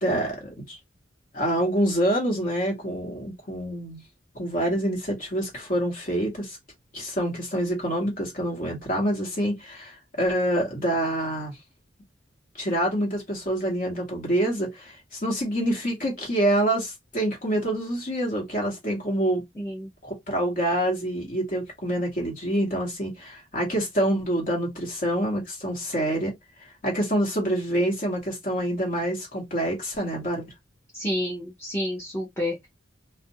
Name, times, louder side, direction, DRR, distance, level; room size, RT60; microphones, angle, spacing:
voice 1, 0.0-0.8 1.3-4.0 4.3-6.6 6.9-11.5 12.6-19.4 20.0-26.3 26.8-30.4, right 1 dB, 45° left, 1.2 m, -26 dB
voice 2, 19.6-19.9 30.9-32.7, left 1 dB, 15° left, 0.7 m, -29 dB
2.5 x 2.1 x 2.6 m
head